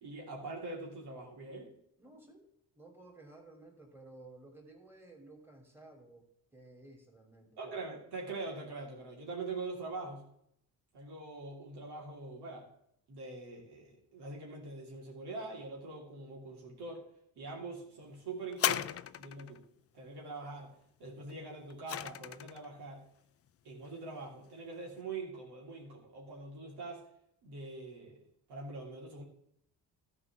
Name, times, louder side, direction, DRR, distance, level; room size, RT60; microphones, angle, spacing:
voice 1, 0.0-1.7 7.6-10.3 10.9-12.7 13.1-17.0 17.4-19.6 19.9-20.7 21.0-23.1 23.6-27.1 27.4-28.2 28.5-29.2, right 3 dB, 75° right, 2.9 m, -43 dB
voice 2, 2.0-2.5 2.7-6.2 6.5-7.7, right 2 dB, 5° right, 2.9 m, -55 dB
sound 1, 18.5-19.6 21.3-22.7 23.5-23.6, left 10 dB, 40° left, 0.4 m, -35 dB
12.5 x 4.8 x 6.1 m
cardioid pair, 70°, 39 cm